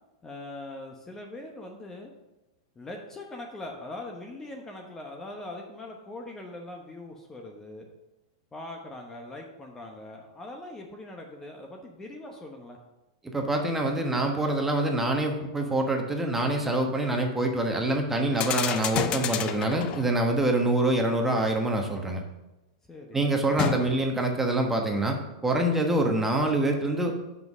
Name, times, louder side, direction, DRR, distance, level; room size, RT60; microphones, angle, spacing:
voice 1, 0.2-2.1 2.8-7.9 8.5-12.8 22.9-23.4, left 2 dB, 15° left, 1 dB, 0.9 m, -41 dB
voice 2, 13.2-22.2 23.1-25.2 25.4-27.2, right 1 dB, 10° right, 2 dB, 1.2 m, -25 dB
sound 1, 18.3-20.2 23.6-24.3, left 10 dB, 35° left, 0.5 m, -30 dB
5.9 x 5.5 x 6.1 m, 0.99 s
hypercardioid pair, 115°, 3 cm